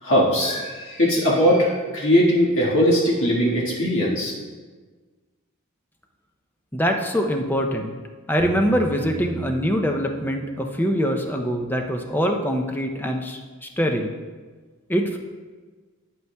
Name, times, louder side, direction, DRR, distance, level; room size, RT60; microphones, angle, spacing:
voice 1, 0.0-4.3, equal, 60° left, -5 dB, 1.6 m, -20 dB
voice 2, 6.7-7.9 8.3-14.1 14.9-15.2, equal, 10° left, 3 dB, 0.5 m, -23 dB
sound 1, 8.4-10.3, equal, 25° right, 2.4 m, -37 dB
9.1 x 8.1 x 2.3 m, 1.4 s
head